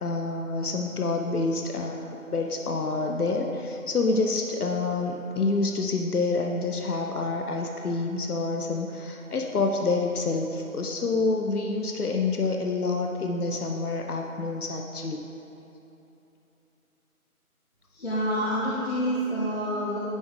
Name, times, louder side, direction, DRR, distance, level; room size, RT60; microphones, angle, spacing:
voice 1, 0.0-15.2, left 3 dB, 85° left, 2 dB, 0.7 m, -27 dB
voice 2, 17.9-20.0, equal, 45° left, -8 dB, 0.9 m, -27 dB
9.7 x 3.7 x 3.6 m, 2.9 s
figure-of-eight pair, 160°, 44 cm